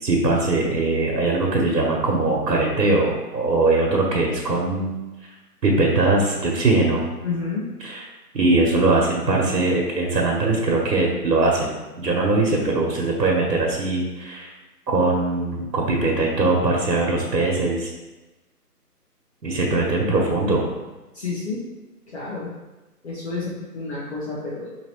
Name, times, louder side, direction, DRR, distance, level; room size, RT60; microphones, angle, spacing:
voice 1, 0.0-5.0 5.6-7.0 7.8-8.0 8.3-14.5 14.9-17.9 19.4-20.7, right 2 dB, 85° right, -1 dB, 1.0 m, -21 dB
voice 2, 7.2-7.7 21.1-21.6 22.1-22.5 23.0-24.7, left 4 dB, 40° left, -9 dB, 0.9 m, -30 dB
4.0 x 2.9 x 2.9 m, 1.1 s
hypercardioid pair, 165°, 48 cm